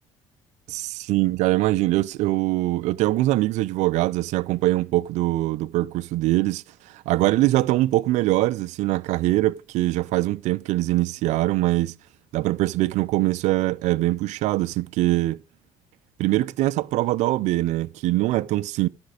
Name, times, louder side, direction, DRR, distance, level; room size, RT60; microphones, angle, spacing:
voice 1, 0.7-12.0 12.3-15.4 16.2-18.9, right 17 dB, 75° right, 0.5 m, -23 dB
13.0 x 5.2 x 5.0 m
cardioid pair, 110°, 12 cm